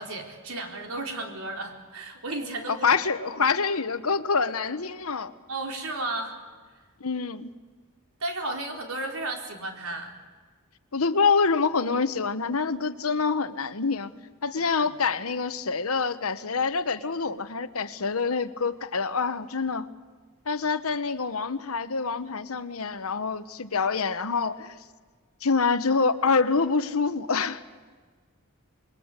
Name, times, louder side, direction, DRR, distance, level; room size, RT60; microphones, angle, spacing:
voice 1, 0.0-2.9 5.5-6.4 8.2-10.1 14.6-14.9, right 2 dB, 85° right, 2 dB, 4.2 m, -34 dB
voice 2, 2.7-5.3 7.0-7.5 10.9-14.1 14.4-19.9 20.5-24.8 25.4-27.6, left 4 dB, 80° left, 12 dB, 1.2 m, -26 dB
27.5 x 22.0 x 8.3 m, 1.5 s
head